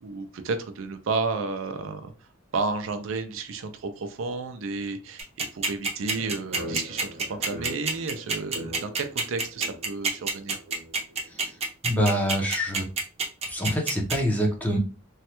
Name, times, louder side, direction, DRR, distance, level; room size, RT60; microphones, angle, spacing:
voice 1, 0.0-2.1 2.5-10.6, right 4 dB, 75° right, 8 dB, 0.4 m, -32 dB
sound 1, 5.2-14.2, right 4 dB, 30° right, 0.7 m, -26 dB
sound 2, 6.1-11.6, equal, 60° right, 0.9 m, -41 dB
voice 2, 11.8-12.9 13.5-14.8, equal, 10° left, 0 dB, 0.7 m, -25 dB
3.1 x 2.2 x 2.9 m, 0.35 s
head